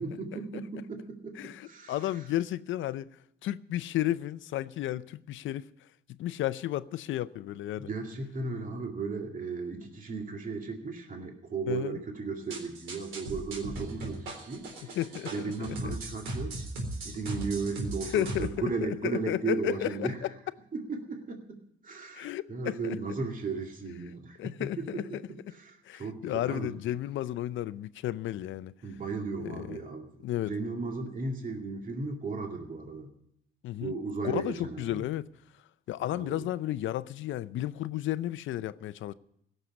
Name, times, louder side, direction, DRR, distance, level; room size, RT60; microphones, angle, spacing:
voice 1, 0.0-2.3 7.8-14.9 15.3-16.6 17.0-20.3 20.7-26.8 28.8-33.1 33.8-35.1 36.1-36.5, right 4 dB, 45° right, 2.3 m, -36 dB
voice 2, 1.4-3.1 3.4-5.6 6.2-7.9 11.7-12.0 15.0-15.3 15.6-15.9 18.1-18.5 19.0-20.1 22.1-23.0 24.4-25.2 25.9-28.7 29.4-29.8 30.2-30.5 33.6-33.9 34.2-35.3 35.9-39.1, left 13 dB, 75° left, 0.6 m, -33 dB
sound 1, 12.5-18.5, right 2 dB, 85° right, 3.9 m, -37 dB
16.5 x 6.7 x 9.6 m
cardioid pair, 90°, 20 cm